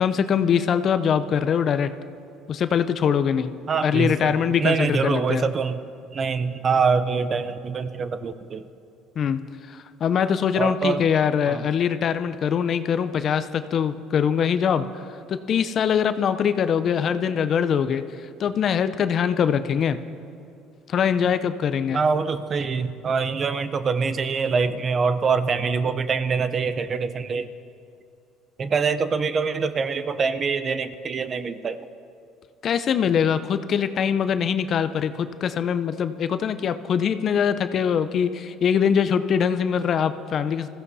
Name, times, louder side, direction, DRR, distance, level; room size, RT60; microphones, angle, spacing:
voice 1, 0.0-1.9 2.5-3.5 3.8-5.4 9.2-9.4 9.7-14.9 15.3-18.0 18.4-20.0 20.9-22.0 32.6-40.7, left 7 dB, 45° left, 11 dB, 0.7 m, -23 dB
voice 2, 3.7-4.3 4.6-5.8 6.1-8.6 10.6-11.0 11.5-11.6 21.9-27.5 28.6-31.8, right 5 dB, 35° right, 12 dB, 0.8 m, -24 dB
20.5 x 15.5 x 4.2 m, 2.6 s
cardioid pair, 110°, 0 cm